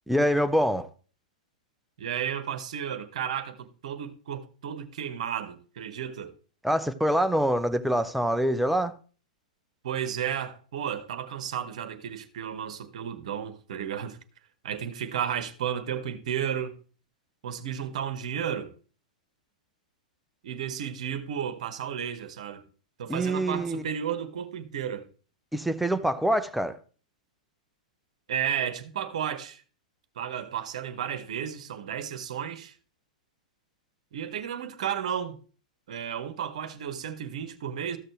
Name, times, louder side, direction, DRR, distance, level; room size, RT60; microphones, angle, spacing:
voice 1, 0.1-0.9 6.6-8.9 23.1-23.8 25.5-26.8, equal, ahead, 0.6 m, -25 dB
voice 2, 2.0-6.3 9.8-14.2 14.6-16.7 17.4-18.7 20.4-22.6 23.0-25.1 28.3-29.6 30.2-32.8 34.1-35.4 35.9-38.0, right 9 dB, 55° right, 1.1 m, -33 dB
14.0 x 6.6 x 3.2 m
figure-of-eight pair, 100°, 4 cm